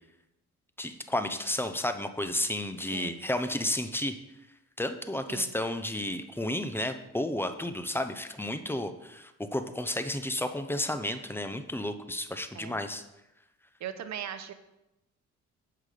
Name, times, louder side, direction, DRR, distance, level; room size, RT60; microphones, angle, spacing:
voice 1, 0.8-4.2 4.8-13.0, left 1 dB, 5° left, 9 dB, 0.8 m, -32 dB
voice 2, 13.8-14.5, right 9 dB, 65° right, 10 dB, 1.0 m, -39 dB
8.1 x 5.9 x 6.7 m, 0.93 s
cardioid pair, 90°, 30 cm